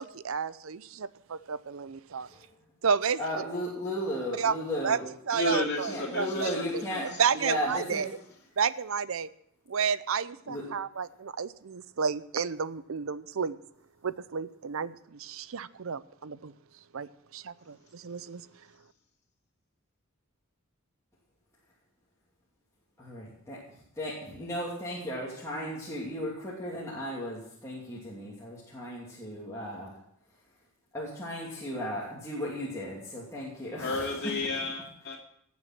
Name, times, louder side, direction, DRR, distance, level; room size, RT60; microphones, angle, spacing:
voice 1, 0.0-2.3 2.8-3.2 4.4-4.5 4.8-5.0 5.3-5.9 6.2-6.5 7.2-8.0 8.6-9.3 9.7-13.6 14.0-16.5 16.9-18.5, right 6 dB, 70° right, 16 dB, 0.6 m, -31 dB
voice 2, 3.2-5.1 5.3-5.5 5.9-8.1 10.4-10.7 23.0-30.0 30.3-30.4 30.9-34.3, equal, 15° left, -6 dB, 2.7 m, -35 dB
voice 3, 5.3-7.2 33.8-35.2, left 3 dB, 50° left, -1 dB, 2.9 m, -32 dB
18.0 x 7.2 x 6.0 m, 0.71 s
head